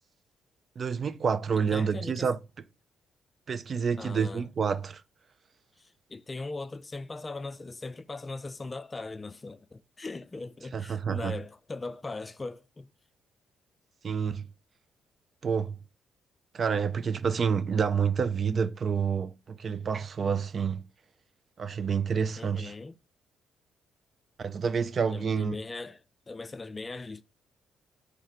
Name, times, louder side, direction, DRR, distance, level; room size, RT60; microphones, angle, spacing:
voice 1, 0.8-2.4 3.5-5.0 10.7-11.4 14.0-14.5 15.4-15.8 16.5-20.8 21.6-22.7 24.4-25.6, right 6 dB, 45° right, 0.4 m, -28 dB
voice 2, 1.6-2.3 4.0-4.5 5.8-12.9 22.4-22.9 25.0-27.2, left 3 dB, 25° left, 0.4 m, -39 dB
3.1 x 3.1 x 4.0 m
cardioid pair, 80°, 0 cm